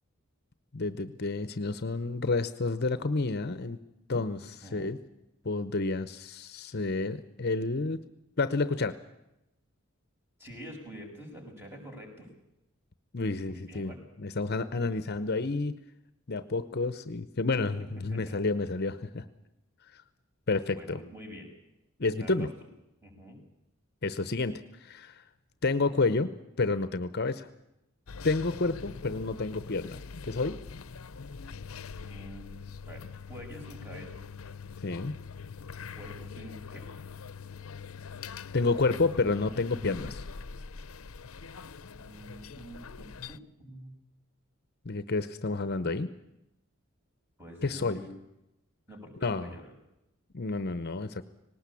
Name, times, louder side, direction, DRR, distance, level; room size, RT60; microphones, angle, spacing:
voice 1, 0.7-3.8 4.1-5.0 5.4-8.0 8.4-9.0 13.1-13.9 14.2-15.8 16.3-19.3 19.9-20.0 20.5-21.0 22.0-22.5 24.0-25.2 25.6-27.5 28.2-30.6 34.8-35.1 38.5-40.2 44.8-46.1 47.6-48.0 49.2-49.5 50.3-51.2, left 3 dB, 50° left, 13 dB, 0.9 m, -30 dB
voice 2, 4.3-4.9 10.4-12.3 13.5-14.0 18.1-18.3 20.7-21.5 22.2-22.5 23.0-23.4 32.0-32.5 32.8-34.2 36.0-36.9 42.0-43.9 47.4-48.2 48.9-49.7, equal, 10° right, 2 dB, 6.5 m, -47 dB
sound 1, 28.1-43.4, left 5 dB, 85° left, 0.7 m, -43 dB
19.5 x 18.5 x 8.5 m, 0.89 s
head